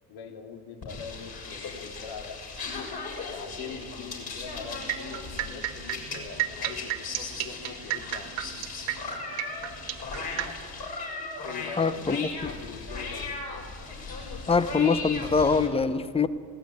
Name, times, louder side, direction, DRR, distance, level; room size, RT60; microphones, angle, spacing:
voice 1, 0.1-3.0 3.2-8.3 11.4-13.3, left 6 dB, 75° left, 3 dB, 3.0 m, -42 dB
sound 1, 0.8-15.7, left 3 dB, 50° left, 6.8 m, -37 dB
sound 2, 4.7-10.5, right 16 dB, 75° right, 1.7 m, -32 dB
voice 2, 11.8-12.5 14.5-16.3, left 5 dB, 10° left, 14 dB, 0.9 m, -24 dB
21.5 x 17.0 x 9.6 m, 2.2 s
supercardioid pair, 75°, 48 cm